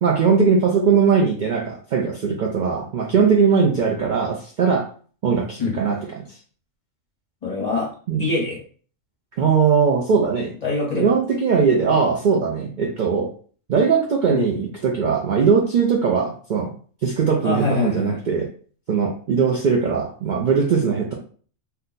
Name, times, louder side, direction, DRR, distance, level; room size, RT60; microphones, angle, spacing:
voice 1, 0.0-4.9 5.2-6.2 8.1-8.3 9.4-10.5 10.9-13.3 13.7-16.7 17.0-18.5 18.9-21.1, right 6 dB, 70° right, 1 dB, 0.4 m, -20 dB
voice 2, 7.4-7.9 8.2-8.6 10.6-11.1 14.3-14.5 17.4-18.1, left 3 dB, 35° left, -3 dB, 1.0 m, -24 dB
2.7 x 2.2 x 3.8 m, 0.43 s
omnidirectional pair, 1.4 m